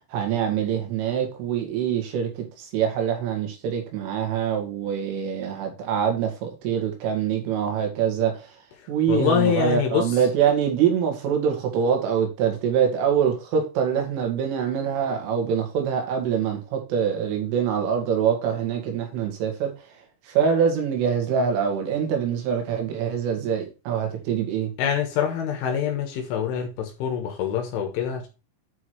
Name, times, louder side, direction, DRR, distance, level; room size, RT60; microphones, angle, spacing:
voice 1, 0.1-8.4 8.9-19.7 20.3-24.7, right 8 dB, 85° right, 4.5 m, -24 dB
voice 2, 8.8-10.3 24.8-28.3, left 8 dB, 80° left, 3.9 m, -25 dB
9.6 x 4.8 x 4.6 m
omnidirectional pair, 5.6 m